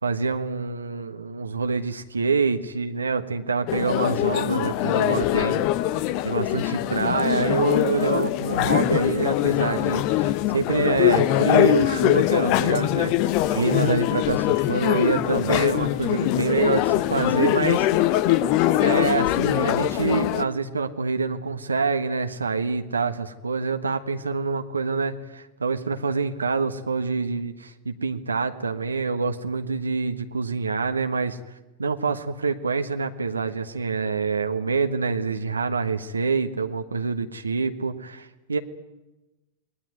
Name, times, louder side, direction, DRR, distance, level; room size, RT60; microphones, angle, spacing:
voice 1, 0.0-5.6 6.2-17.9 18.8-31.4 31.8-38.6, right 4 dB, 75° right, 7 dB, 1.3 m, -26 dB
sound 1, 3.7-20.4, left 14 dB, 45° left, 1.0 m, -22 dB
28.5 x 20.5 x 9.4 m, 1.0 s
figure-of-eight pair, 90°, 0 cm